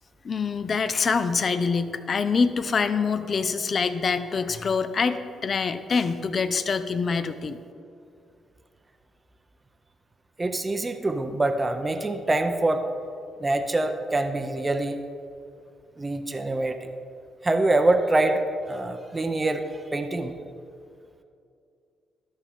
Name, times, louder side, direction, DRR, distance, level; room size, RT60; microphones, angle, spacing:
voice 1, 0.2-7.6, left 5 dB, 45° left, 11 dB, 0.5 m, -25 dB
voice 2, 10.4-12.8 13.4-15.0 16.0-16.9 17.4-19.6 19.9-20.3, right 2 dB, 20° right, 6 dB, 0.6 m, -25 dB
13.0 x 6.1 x 3.6 m, 2.4 s
cardioid pair, 90°, 0 cm